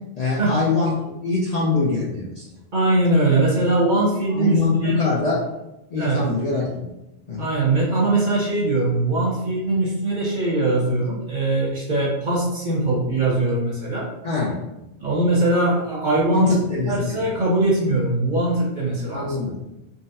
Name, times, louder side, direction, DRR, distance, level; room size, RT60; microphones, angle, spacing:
voice 1, 0.2-2.4 4.3-5.4 5.9-6.9 7.3-7.5 14.2-14.6 16.3-17.2 19.1-19.6, left 4 dB, 50° left, -6 dB, 0.5 m, -23 dB
voice 2, 2.7-5.0 6.0-6.3 7.4-14.1 15.0-16.5 16.9-19.3, right 2 dB, 45° right, -5 dB, 0.9 m, -21 dB
3.9 x 2.0 x 2.7 m, 0.93 s
omnidirectional pair, 1.2 m